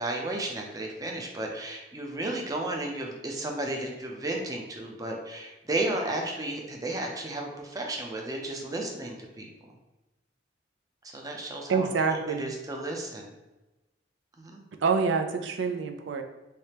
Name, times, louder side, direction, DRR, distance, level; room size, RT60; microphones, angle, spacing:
voice 1, 0.0-9.7 11.1-13.3 14.4-14.6, right 2 dB, 20° right, 0 dB, 0.5 m, -33 dB
voice 2, 11.7-12.5 14.8-16.2, right 5 dB, 75° right, 6 dB, 0.4 m, -26 dB
3.3 x 3.2 x 2.9 m, 1.0 s
head